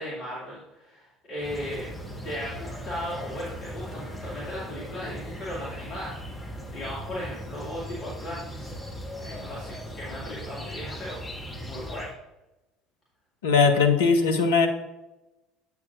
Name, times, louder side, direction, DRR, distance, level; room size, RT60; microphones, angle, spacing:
voice 1, 0.0-1.9 2.2-8.7 9.2-11.2 11.6-12.1, left 1 dB, 45° left, -7 dB, 2.2 m, -36 dB
sound 1, 1.4-12.1, equal, 15° left, 1.5 m, -39 dB
voice 2, 13.4-14.7, left 5 dB, 70° left, 5 dB, 0.8 m, -20 dB
8.4 x 7.4 x 2.5 m, 0.98 s
figure-of-eight pair, 60°, 0 cm